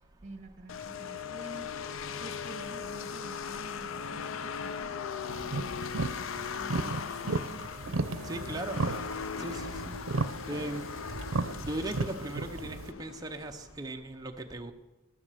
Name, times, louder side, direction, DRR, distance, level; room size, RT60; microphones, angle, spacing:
voice 1, 0.2-1.7 2.2-5.7 6.5-8.4 8.7-8.9, right 2 dB, 35° right, 5 dB, 1.6 m, -49 dB
sound 1, 0.7-13.7, left 6 dB, 80° left, 0.5 m, -39 dB
sound 2, 2.2-11.8, left 5 dB, 40° left, 2.7 m, -55 dB
sound 3, 5.3-12.9, right 3 dB, 80° right, 0.7 m, -35 dB
voice 2, 8.2-8.8 9.4-9.9 10.5-10.8 11.6-14.7, right 1 dB, 20° right, 3 dB, 0.7 m, -38 dB
12.5 x 10.5 x 6.9 m, 1.1 s
head